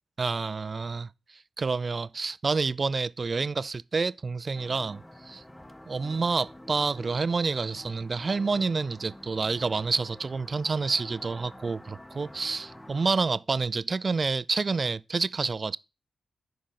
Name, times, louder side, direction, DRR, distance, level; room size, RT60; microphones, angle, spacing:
voice 1, 0.2-1.1 1.6-5.4 5.9-15.8, right 4 dB, 45° right, 0.3 m, -28 dB
sound 1, 4.5-13.2, left 1 dB, 10° left, 0.6 m, -48 dB
5.2 x 5.0 x 5.8 m
cardioid pair, 65°, 0 cm